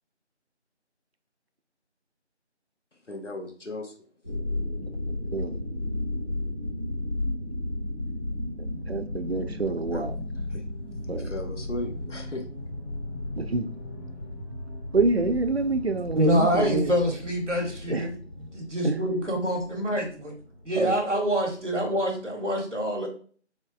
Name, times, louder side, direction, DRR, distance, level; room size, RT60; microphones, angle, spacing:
voice 1, 3.1-3.9 9.9-10.0 10.5-10.6 11.1-12.4, left 1 dB, 90° left, 4 dB, 1.2 m, -36 dB
sound 1, 4.2-21.6 22.0-22.1, left 1 dB, 25° left, 2.1 m, -34 dB
voice 2, 8.6-10.1 11.1-11.3 13.3-13.7 14.9-16.9 17.9-18.1 18.8-19.0 20.7-21.0, right 3 dB, 60° right, 9 dB, 0.6 m, -27 dB
voice 3, 16.2-18.2 18.5-20.3 20.7-23.1, equal, 85° right, 1 dB, 1.9 m, -26 dB
4.4 x 4.4 x 2.4 m, 0.43 s
figure-of-eight pair, 175°, 35 cm